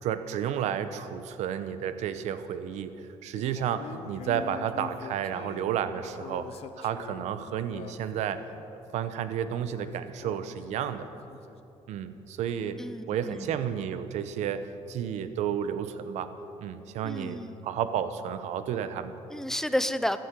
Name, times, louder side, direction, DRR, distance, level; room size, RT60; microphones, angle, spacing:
voice 1, 0.0-3.0 3.2-8.4 8.9-11.1 11.9-12.8 13.1-16.3 16.6-19.1, right 9 dB, 75° right, 11 dB, 0.9 m, -32 dB
sound 1, 3.4-8.6 9.3-11.6, left 8 dB, 55° left, 0.7 m, -45 dB
voice 2, 12.8-13.6 17.0-17.6 19.3-20.2, left 1 dB, 5° left, 12 dB, 0.7 m, -31 dB
14.5 x 10.5 x 8.2 m, 2.8 s
cardioid pair, 110°, 12 cm